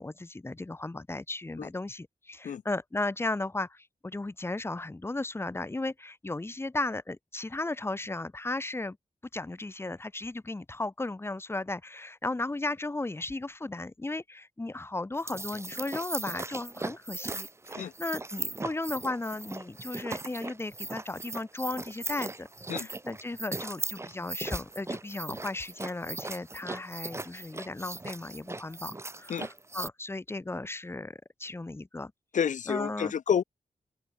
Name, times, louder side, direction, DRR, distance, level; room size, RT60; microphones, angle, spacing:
voice 1, 0.0-9.0 9.3-32.1 32.7-33.1, left 2 dB, 20° left, 3.6 m, -35 dB
sound 1, 15.1-29.9, right 2 dB, 20° right, 2.2 m, -38 dB
voice 2, 32.3-33.4, left 8 dB, 85° left, 4.8 m, -29 dB
open air
wide cardioid pair, 120°, 12 cm